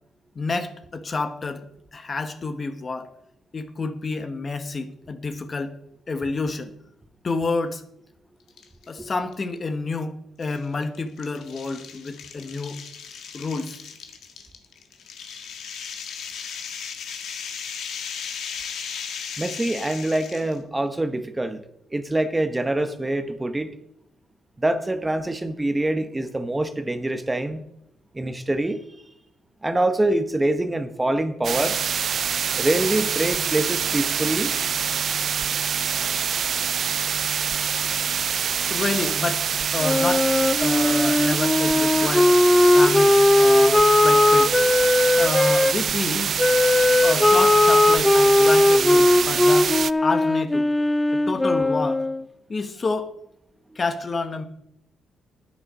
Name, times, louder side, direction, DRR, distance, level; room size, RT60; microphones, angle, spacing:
voice 1, 0.3-3.1 3.5-5.7 6.1-6.7 7.2-7.8 8.9-12.8 13.3-13.8 38.7-39.4 39.7-40.3 40.6-42.3 42.7-44.5 45.2-46.4 47.0-49.7 50.0-50.7 51.1-52.0 52.5-53.1 53.7-54.5, left 3 dB, 35° left, 9 dB, 1.2 m, -29 dB
sound 1, 8.5-8.9 9.3-9.4 10.4-20.6, left 7 dB, 75° left, 1.5 m, -36 dB
voice 2, 19.4-21.6 21.9-23.7 24.6-27.6 28.1-28.8 29.6-31.8 32.6-34.6, right 1 dB, 15° right, 9 dB, 1.0 m, -25 dB
sound 2, 31.4-49.9, right 7 dB, 55° right, 0.3 m, -25 dB
Wind instrument woodwind instrument, 39.8-45.7 46.4-52.2, left 2 dB, 15° left, 0.5 m, -18 dB
9.8 x 9.7 x 5.4 m, 0.75 s
cardioid pair, 90°, 0 cm